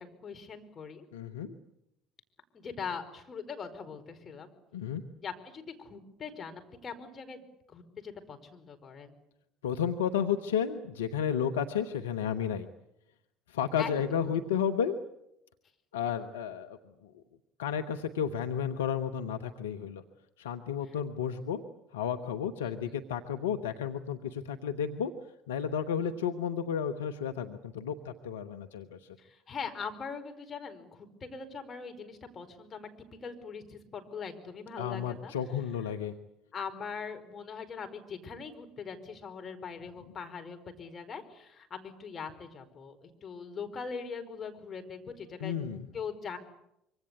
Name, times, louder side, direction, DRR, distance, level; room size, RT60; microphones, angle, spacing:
voice 1, 0.0-1.0 2.5-4.5 5.2-9.1 13.8-14.3 20.8-20.9 22.6-23.0 26.0-26.2 29.2-32.9 33.2-35.3 36.5-45.5 45.9-46.4, left 6 dB, 35° left, 5 dB, 5.1 m, -41 dB
voice 2, 1.1-1.5 4.7-5.0 9.6-12.7 13.5-14.9 15.9-16.8 17.0-17.1 17.6-20.0 20.4-21.6 21.9-25.1 25.5-29.2 34.8-36.1 45.4-45.9, left 8 dB, 70° left, 5 dB, 1.2 m, -32 dB
25.5 x 25.0 x 8.5 m, 0.81 s
figure-of-eight pair, 60°, 0 cm